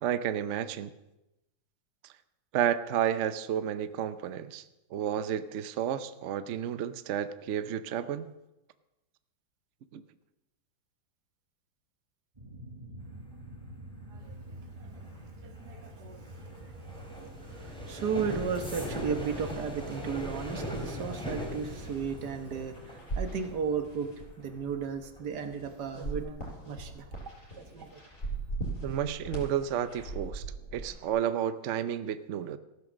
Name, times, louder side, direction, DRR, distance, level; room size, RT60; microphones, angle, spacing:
voice 1, 0.0-0.9 2.5-4.6 4.9-8.3 9.9-10.0 28.8-30.4 30.7-32.6, right 9 dB, 75° right, 12 dB, 0.6 m, -31 dB
sound 1, 12.3-22.7, right 1 dB, 20° right, 1.6 m, -48 dB
sound 2, 13.0-27.7 28.0-28.4 28.7-29.1, equal, ahead, 3.1 m, -42 dB
voice 2, 14.1-15.1 15.4-16.8 17.4-24.1 24.4-27.1 27.6-28.0, right 6 dB, 60° right, 8 dB, 1.7 m, -35 dB
sound 3, 20.5-31.1, right 2 dB, 40° left, 5.1 m, -41 dB
15.0 x 11.0 x 6.3 m, 0.93 s
omnidirectional pair, 2.1 m